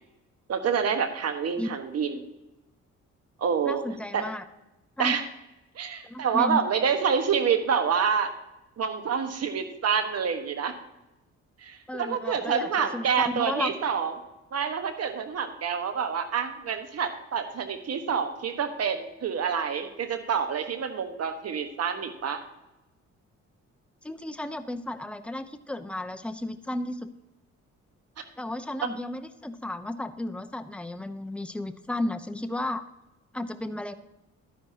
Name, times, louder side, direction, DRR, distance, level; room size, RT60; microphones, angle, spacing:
voice 1, 0.5-2.3 3.4-3.8 4.1-4.2 5.0-5.2 5.7-8.3 8.8-10.7 11.6-14.2 14.5-22.4 28.8-28.9, right 6 dB, 55° right, 7 dB, 1.3 m, -27 dB
voice 2, 3.6-4.4 5.0-5.2 6.0-6.6 11.9-13.7 24.0-27.1 28.4-32.8 33.3-33.9, left 1 dB, 5° left, 10 dB, 0.7 m, -33 dB
12.0 x 10.0 x 2.8 m, 0.97 s
cardioid pair, 90°, 30 cm